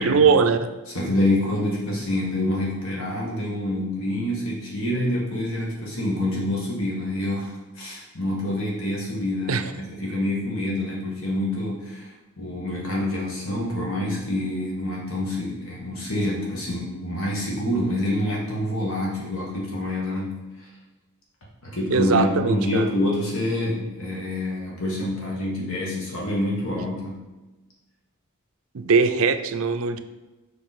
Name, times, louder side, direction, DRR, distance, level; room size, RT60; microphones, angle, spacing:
voice 1, 0.0-0.7 9.5-9.6 21.9-22.9 26.8-26.9 28.7-30.0, right 5 dB, 65° right, 9 dB, 0.5 m, -20 dB
voice 2, 0.9-20.3 20.6-20.7 21.6-27.2, left 1 dB, 60° left, -3 dB, 1.5 m, -27 dB
6.4 x 5.3 x 4.1 m, 1.1 s
head